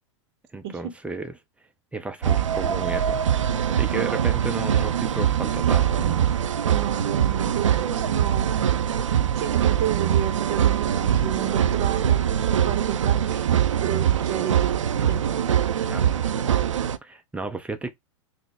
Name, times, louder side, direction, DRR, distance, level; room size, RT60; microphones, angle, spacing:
voice 1, 0.5-1.3 1.9-3.2 3.7-6.4 15.9-16.1 17.0-18.0, right 3 dB, 10° right, 0.5 m, -33 dB
Mexico nightclub, 2.2-17.0, right 9 dB, 85° right, 0.4 m, -23 dB
voice 2, 6.7-8.9 9.4-13.5 13.8-14.7 15.0-15.2, right 10 dB, 50° right, 0.7 m, -32 dB
3.9 x 2.1 x 3.4 m
hypercardioid pair, 105°, 16 cm